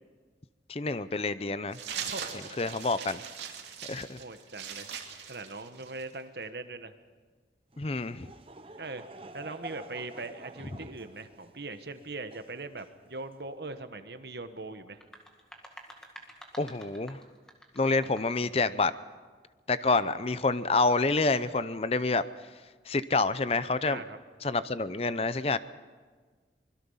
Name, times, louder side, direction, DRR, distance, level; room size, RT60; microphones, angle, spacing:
voice 1, 0.7-1.8 2.6-3.2 3.9-4.2 7.8-8.3 16.6-17.2 17.8-18.9 19.7-22.2 22.9-24.0 24.4-25.6, left 3 dB, 35° left, 14 dB, 0.6 m, -27 dB
sound 1, 1.7-6.2, right 7 dB, 85° right, 2.6 m, -40 dB
voice 2, 2.0-2.8 4.2-4.9 5.3-6.9 8.8-9.0 9.3-15.0 20.0-20.2 23.8-24.2, right 3 dB, 65° right, 9 dB, 1.3 m, -41 dB
Laughter / Crowd, 7.7-13.5, right 2 dB, 30° right, 0.9 m, -49 dB
sound 2, 14.9-18.5, equal, 5° left, 2.0 m, -50 dB
24.5 x 21.5 x 5.6 m, 1.4 s
head